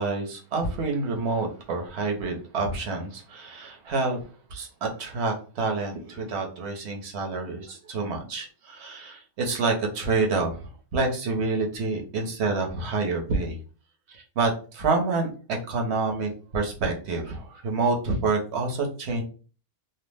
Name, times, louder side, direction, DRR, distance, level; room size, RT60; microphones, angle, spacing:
voice 1, 0.0-4.2 4.5-13.6 14.1-19.2, right 3 dB, 55° right, 2 dB, 0.8 m, -28 dB
2.5 x 2.0 x 3.2 m, 0.37 s
omnidirectional pair, 1.6 m